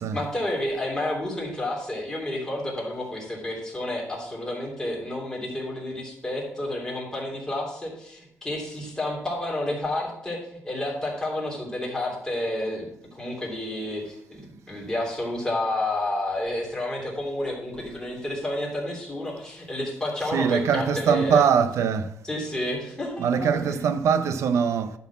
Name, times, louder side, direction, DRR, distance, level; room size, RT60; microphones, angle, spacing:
voice 1, 0.1-12.9 13.1-21.4 22.2-23.8, left 1 dB, 10° left, 3.1 m, -30 dB
voice 2, 20.3-22.1 23.2-24.9, right 7 dB, 70° right, 0.7 m, -22 dB
11.0 x 4.1 x 7.0 m
cardioid pair, 135°, 5 cm